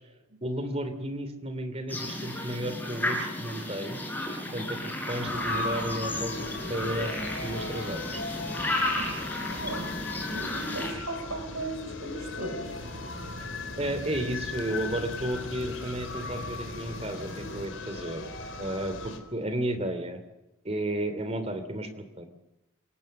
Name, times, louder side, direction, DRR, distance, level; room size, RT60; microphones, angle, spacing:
voice 1, 0.4-4.0 4.5-8.2 13.8-18.3 18.6-20.2 20.6-22.3, right 1 dB, 30° right, 9 dB, 3.0 m, -33 dB
sound 1, 1.9-10.9, left 1 dB, 10° left, 7.1 m, -33 dB
sound 2, 5.2-19.2, left 3 dB, 70° left, 3.6 m, -38 dB
voice 2, 9.4-10.0 10.3-12.7, right 2 dB, 90° right, 5 dB, 6.3 m, -37 dB
sound 3, 12.6-17.7, equal, 65° right, 3.9 m, -43 dB
28.0 x 17.5 x 6.7 m, 0.93 s
head